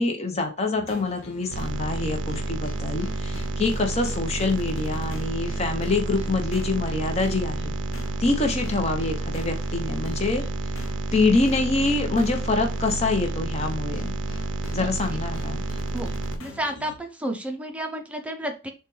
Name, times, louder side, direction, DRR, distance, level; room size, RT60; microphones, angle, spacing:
voice 1, 0.0-7.7 8.2-10.4 11.1-14.1 14.7-15.6, left 3 dB, 30° left, 4 dB, 0.8 m, -25 dB
sound 1, 0.8-17.0, left 2 dB, 75° left, 0.7 m, -43 dB
sound 2, 1.5-16.4, right 3 dB, 60° right, 0.5 m, -30 dB
voice 2, 14.8-15.2 15.9-18.7, right 1 dB, 5° right, 4 dB, 0.5 m, -32 dB
6.3 x 2.3 x 3.1 m, 0.32 s
head